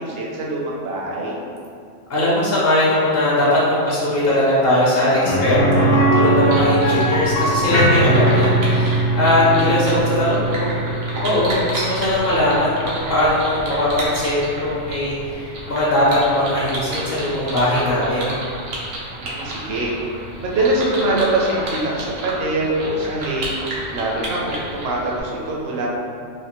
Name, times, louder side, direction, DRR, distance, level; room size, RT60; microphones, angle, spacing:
voice 1, 0.0-1.4 19.1-25.9, right 2 dB, 60° right, -3 dB, 0.8 m, -23 dB
voice 2, 2.1-10.7 11.2-18.4, left 1 dB, 55° left, -8 dB, 0.8 m, -20 dB
sound 1, 5.2-15.0 15.3-15.4 17.9-18.0, right 1 dB, 90° left, 1.0 m, -20 dB
sound 2, 6.4-25.2, right 1 dB, 90° right, 1.1 m, -31 dB
3.3 x 2.5 x 2.9 m, 2.4 s
omnidirectional pair, 1.3 m